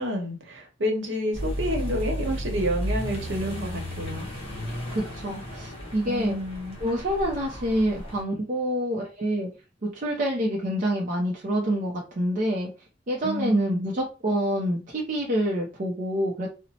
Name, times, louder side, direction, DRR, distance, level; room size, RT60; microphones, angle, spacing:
voice 1, 0.0-4.3 6.1-6.8 13.2-13.9, equal, 75° right, 0.9 m, -29 dB
Accelerating revving vroom, 1.3-8.2, equal, 30° left, 0.9 m, -33 dB
voice 2, 4.9-6.4 6.8-9.5 9.8-12.7 13.1-16.5, equal, 45° right, 0.5 m, -27 dB
2.9 x 2.1 x 2.7 m
head